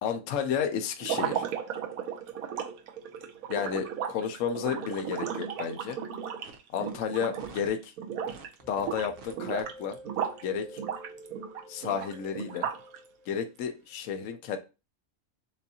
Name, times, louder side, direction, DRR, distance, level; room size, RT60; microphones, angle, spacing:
voice 1, 0.0-1.4 3.5-6.0 6.7-7.9 8.7-10.0 10.4-10.8 11.7-12.7 13.3-14.6, left 7 dB, 70° left, 6 dB, 1.0 m, -32 dB
sound 1, 1.0-7.7 8.0-8.5 8.8-10.4 10.8-13.0, right 8 dB, 80° right, 1.2 m, -35 dB
sound 2, 6.4-6.6 6.8-7.0 7.3-7.8 8.3-8.9 9.2-9.6, right 5 dB, 50° right, 0.8 m, -48 dB
sound 3, 8.6-13.7, equal, 10° left, 0.7 m, -50 dB
7.1 x 2.5 x 2.8 m, 0.29 s
omnidirectional pair, 1.5 m